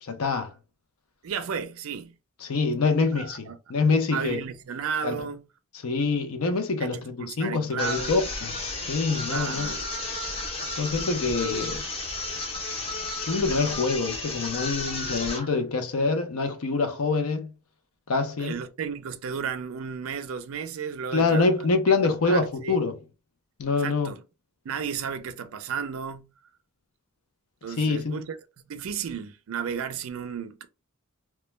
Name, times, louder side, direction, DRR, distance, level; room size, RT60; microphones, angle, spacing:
voice 1, 0.0-0.5 2.4-4.4 5.0-5.1 5.7-8.6 8.9-9.7 10.8-11.8 13.2-17.5 18.1-18.6 21.1-23.0 23.6-24.1 27.8-28.2, left 4 dB, 70° left, 0.5 m, -25 dB
voice 2, 1.2-2.1 3.2-3.6 4.1-5.4 6.8-8.1 9.3-9.9 11.4-11.6 18.4-21.5 21.9-22.0 22.3-22.8 23.8-24.2 24.6-26.3 27.6-28.4 28.7-30.7, right 6 dB, 65° right, 0.4 m, -33 dB
sound 1, 7.8-15.5, left 3 dB, 25° left, 0.5 m, -33 dB
2.2 x 2.1 x 3.0 m
head